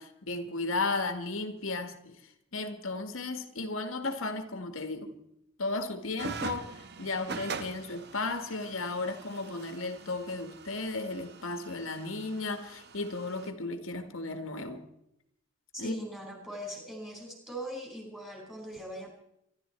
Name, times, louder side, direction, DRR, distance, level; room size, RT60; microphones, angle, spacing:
voice 1, 0.0-5.1 5.6-14.8 15.8-16.0, left 3 dB, 75° left, 1.7 m, -35 dB
sound 1, 6.2-13.5, right 4 dB, 50° right, 1.2 m, -43 dB
voice 2, 15.7-19.1, equal, 5° right, 5.0 m, -40 dB
24.5 x 12.0 x 4.4 m
head